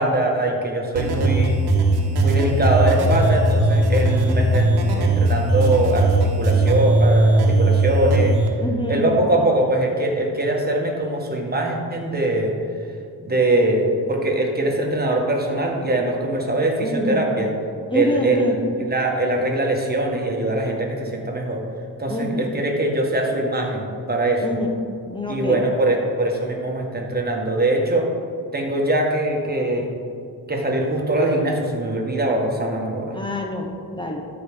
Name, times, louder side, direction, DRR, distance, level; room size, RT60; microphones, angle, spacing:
voice 1, 0.0-1.6 2.2-8.4 8.9-12.5 13.2-17.5 17.9-18.6 18.9-21.6 22.0-24.6 25.3-28.1 28.5-29.9 30.5-33.1, right 1 dB, 25° right, 0 dB, 1.7 m, -22 dB
sound 1, 0.9-8.5, right 2 dB, 85° right, 1.2 m, -18 dB
voice 2, 8.6-9.2 16.8-17.2 17.9-18.6 22.1-22.5 24.4-24.7 25.1-25.6 33.1-34.2, left 1 dB, 10° left, 1 dB, 0.9 m, -26 dB
13.5 x 4.9 x 3.8 m, 2.3 s
cardioid pair, 75°, 38 cm